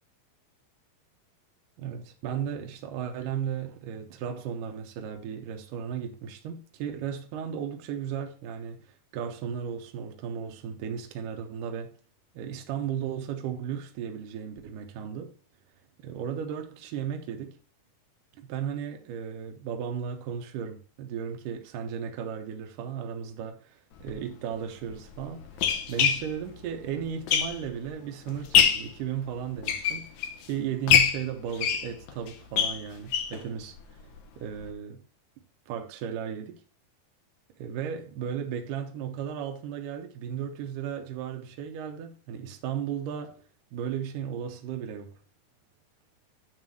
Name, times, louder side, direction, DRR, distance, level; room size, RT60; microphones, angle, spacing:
voice 1, 1.8-11.9 12.3-15.3 16.0-17.6 18.4-30.1 30.4-34.0 34.4-35.1 35.7-36.6 37.6-43.4 43.7-45.1, right 8 dB, 70° right, 2.2 m, -35 dB
sound 1, 24.0-24.1 24.9-27.9 28.3-28.9 29.5-30.4 30.9-33.4 33.8-33.9 34.2-34.3 34.6-34.7, left 8 dB, 70° left, 1.8 m, -25 dB
9.1 x 3.3 x 6.3 m
omnidirectional pair, 4.3 m